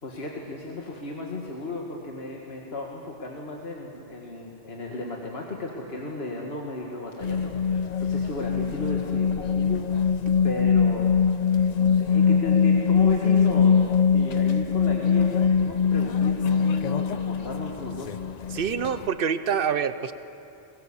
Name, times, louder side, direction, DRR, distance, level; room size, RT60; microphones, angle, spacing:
voice 1, 0.0-9.9 10.4-11.1 11.7-13.8 14.1-18.1, left 2 dB, 75° left, -1 dB, 1.9 m, -35 dB
sound 1, 7.2-19.1, left 6 dB, 50° left, 0.6 m, -22 dB
voice 2, 18.5-20.1, right 7 dB, 65° right, 12 dB, 0.9 m, -26 dB
21.5 x 20.0 x 7.1 m, 2.8 s
omnidirectional pair, 1.1 m